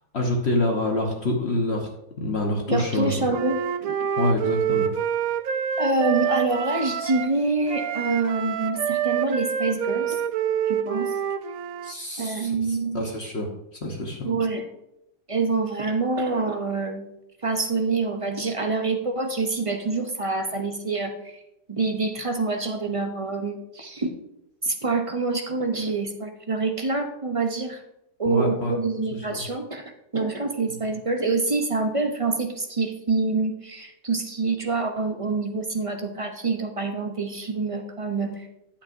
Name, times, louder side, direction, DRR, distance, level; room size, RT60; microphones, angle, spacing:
voice 1, 0.1-1.9 2.2-3.3 4.2-4.9 11.8-13.5 13.8-14.3 28.3-28.7 29.3-29.4, left 1 dB, 50° left, 0 dB, 1.3 m, -26 dB
voice 2, 2.7-4.1 5.8-10.2 10.7-11.2 12.2-13.1 14.2-14.6 15.3-17.2 17.4-21.4 21.7-24.2 24.6-27.8 28.2-38.5, right 3 dB, 30° right, 5 dB, 0.6 m, -26 dB
Wind instrument woodwind instrument, 3.3-7.3 7.7-11.9, right 8 dB, 75° right, 1.1 m, -27 dB
10.0 x 8.7 x 2.6 m, 0.86 s
omnidirectional pair, 1.5 m